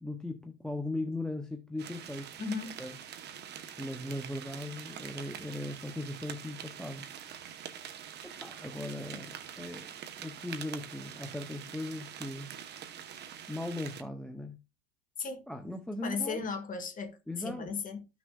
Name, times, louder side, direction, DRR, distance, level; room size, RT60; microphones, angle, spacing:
voice 1, 0.0-2.4 2.8-2.9 3.8-7.1 8.3-9.9 10.2-12.5 13.5-14.6 15.5-16.4 17.3-17.7, left 1 dB, ahead, 0.5 m, -38 dB
sound 1, 1.8-14.0, right 9 dB, 30° right, 0.9 m, -45 dB
voice 2, 2.4-2.8 15.2-15.5 16.0-18.1, left 5 dB, 25° left, 1.5 m, -36 dB
13.5 x 6.1 x 2.2 m
supercardioid pair, 150°, 34 cm